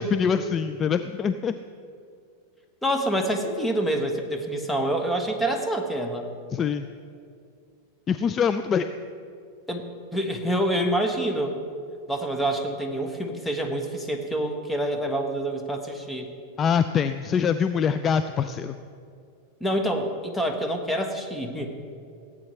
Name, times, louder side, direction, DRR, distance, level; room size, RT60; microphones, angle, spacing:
voice 1, 0.0-1.5 6.5-6.8 8.1-8.9 16.6-18.8, left 7 dB, 30° left, 10 dB, 0.4 m, -24 dB
voice 2, 2.8-6.3 9.7-11.6 12.1-16.3 19.6-21.9, right 1 dB, 5° left, 3 dB, 1.3 m, -27 dB
17.0 x 8.8 x 3.3 m, 2.3 s
hypercardioid pair, 105°, 0 cm